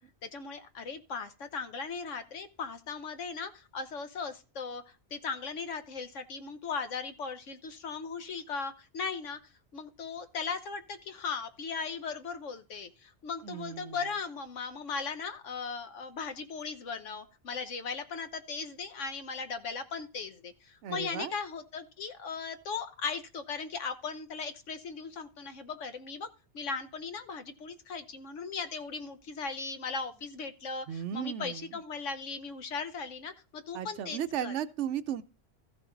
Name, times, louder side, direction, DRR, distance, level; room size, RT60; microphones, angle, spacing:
voice 1, 0.2-4.8 5.1-9.4 9.7-26.3 26.5-30.9 31.1-34.5, left 5 dB, 80° left, 1.3 m, -38 dB
voice 2, 13.4-14.1 20.8-21.3 30.9-31.8 33.7-35.2, right 9 dB, 80° right, 1.0 m, -35 dB
14.0 x 6.0 x 3.9 m
omnidirectional pair, 1.2 m